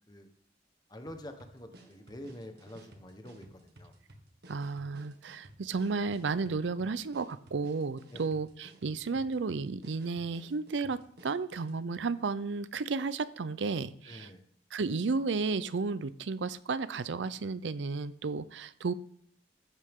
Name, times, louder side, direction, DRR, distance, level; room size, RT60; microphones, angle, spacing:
voice 1, 0.9-3.9 8.1-8.2 14.1-14.4, left 1 dB, 25° left, 1.2 m, -47 dB
sound 1, 1.1-11.8, right 1 dB, 65° right, 1.7 m, -56 dB
voice 2, 4.5-14.3 14.7-18.9, right 4 dB, 90° right, 0.5 m, -33 dB
14.0 x 8.1 x 3.7 m
head